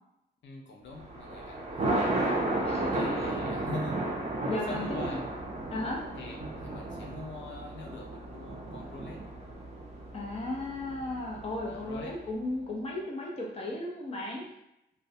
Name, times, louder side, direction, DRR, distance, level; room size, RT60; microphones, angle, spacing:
voice 1, 0.4-2.4 2.9-4.0 4.5-5.2 6.1-9.2 11.6-12.1, left 2 dB, 80° left, 1 dB, 0.4 m, -43 dB
Thunder, 0.9-12.3, right 2 dB, 35° right, 0.5 m, -34 dB
voice 2, 2.6-3.3 4.5-5.2 5.7-6.0 10.1-14.5, left 2 dB, 30° left, -1 dB, 0.6 m, -35 dB
2.5 x 2.1 x 2.6 m, 0.83 s
wide cardioid pair, 120°, 19 cm